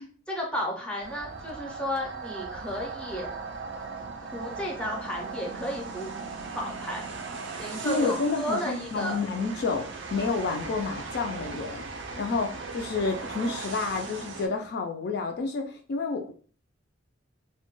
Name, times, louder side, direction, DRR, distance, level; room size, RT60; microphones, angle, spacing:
voice 1, 0.3-3.3 4.3-6.1 6.5-7.1 7.6-9.2, left 1 dB, 5° left, -1 dB, 0.5 m, -33 dB
sound 1, 1.0-14.5, right 4 dB, 65° right, 0.4 m, -38 dB
voice 2, 7.8-11.8 12.2-16.3, left 4 dB, 55° left, 4 dB, 0.3 m, -29 dB
2.2 x 2.1 x 3.0 m, 0.42 s
head